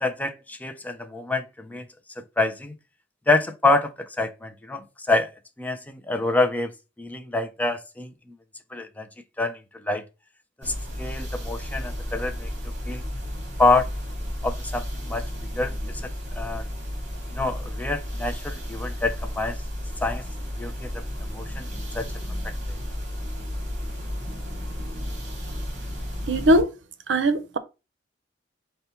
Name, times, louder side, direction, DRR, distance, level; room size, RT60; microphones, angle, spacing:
voice 1, 0.0-1.9 2.2-2.7 3.3-5.3 5.6-6.7 7.0-8.4 8.7-9.1 9.4-9.6 9.8-10.0 10.6-13.0 13.6-13.9 14.4-15.3 15.5-16.0 16.4-16.7 17.3-19.6 20.0-20.2 20.6-21.0 21.3-21.7 21.9-22.1 22.4-22.5, left 2 dB, 10° left, 0.3 m, -26 dB
sound 1, 10.6-26.6, equal, 40° right, 1.6 m, -33 dB
voice 2, 26.3-26.7 27.1-27.6, right 1 dB, 75° right, 0.6 m, -20 dB
5.4 x 2.2 x 4.2 m
head